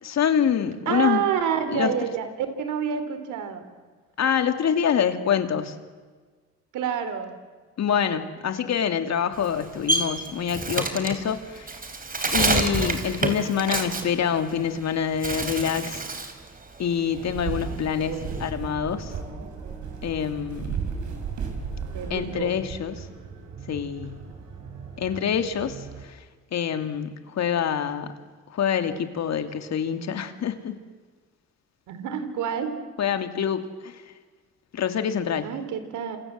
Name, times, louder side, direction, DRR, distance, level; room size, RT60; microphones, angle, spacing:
voice 1, 0.0-1.2 1.7-1.9 4.2-5.8 7.8-11.8 12.3-16.0 16.8-19.1 20.0-20.8 22.1-23.1 23.7-24.2 25.0-26.2 26.5-28.1 28.5-30.8 33.0-34.0 34.7-35.5, left 8 dB, 60° left, 8 dB, 2.6 m, -26 dB
voice 2, 0.9-3.7 6.7-7.4 17.6-18.5 21.9-22.5 31.9-32.8 35.4-36.2, right 8 dB, 85° right, 10 dB, 3.7 m, -28 dB
Bird, 9.3-14.8 15.1-16.4 16.8-18.5, right 3 dB, 30° right, 3.8 m, -28 dB
sound 1, 17.1-26.0, right 6 dB, 70° right, 5.9 m, -35 dB
28.5 x 27.0 x 7.6 m, 1.5 s
cardioid pair, 90°, 30 cm